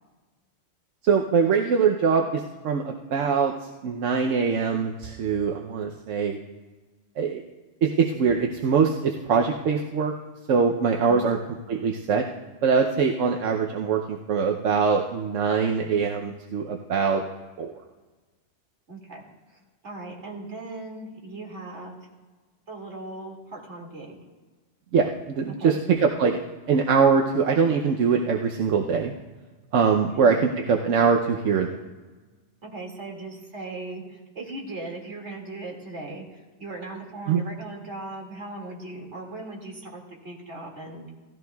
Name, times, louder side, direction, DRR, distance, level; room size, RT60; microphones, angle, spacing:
voice 1, 1.0-6.4 7.2-7.4 7.8-10.1 10.5-11.4 11.7-12.3 12.6-17.2 17.6-17.7 24.9-26.4 26.7-29.1 29.7-31.7 37.3-37.4, right 5 dB, 90° right, 2 dB, 1.1 m, -23 dB
voice 2, 18.9-19.2 19.8-22.0 22.7-24.2 25.5-25.8 30.0-30.4 32.6-41.1, right 2 dB, 70° right, -1 dB, 2.5 m, -38 dB
17.5 x 14.0 x 2.3 m, 1.3 s
omnidirectional pair, 1.2 m